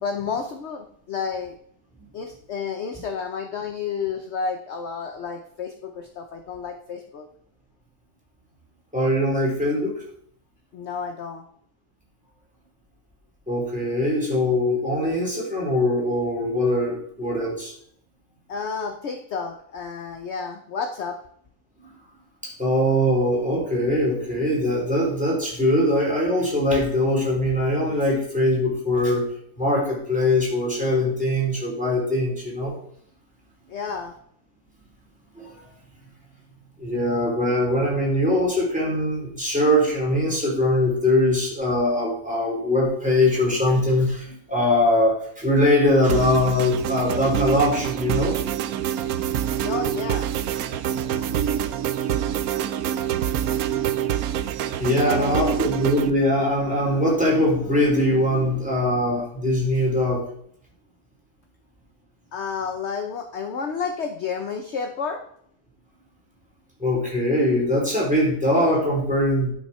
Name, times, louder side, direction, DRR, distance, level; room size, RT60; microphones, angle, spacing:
voice 1, 0.0-1.5 2.1-7.3 10.7-11.4 18.5-21.2 33.7-34.1 49.6-50.3 54.9-55.6 62.3-65.2, left 5 dB, 55° left, 5 dB, 1.0 m, -31 dB
voice 2, 8.9-9.9 13.5-17.7 22.4-29.2 29.6-32.8 35.4-35.6 36.8-48.3 49.4-49.5 54.8-60.2 66.8-69.5, left 1 dB, 5° right, -4 dB, 3.8 m, -22 dB
sound 1, 46.1-56.1, right 10 dB, 80° right, 1.1 m, -26 dB
11.0 x 6.4 x 4.3 m, 0.65 s
omnidirectional pair, 1.6 m